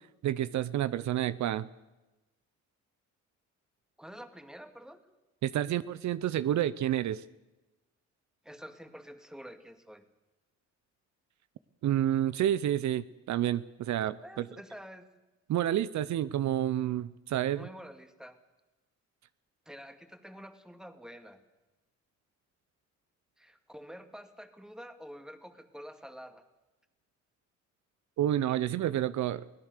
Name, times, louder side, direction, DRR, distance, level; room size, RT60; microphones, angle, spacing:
voice 1, 0.2-1.7 5.4-7.2 11.8-14.5 15.5-17.6 28.2-29.4, right 12 dB, 70° right, 16 dB, 0.7 m, -29 dB
voice 2, 4.0-5.0 8.4-10.1 14.2-15.1 17.5-18.4 19.7-21.4 23.4-26.4, equal, ahead, 8 dB, 2.1 m, -48 dB
24.0 x 17.0 x 6.7 m, 1.1 s
cardioid pair, 90°, 30 cm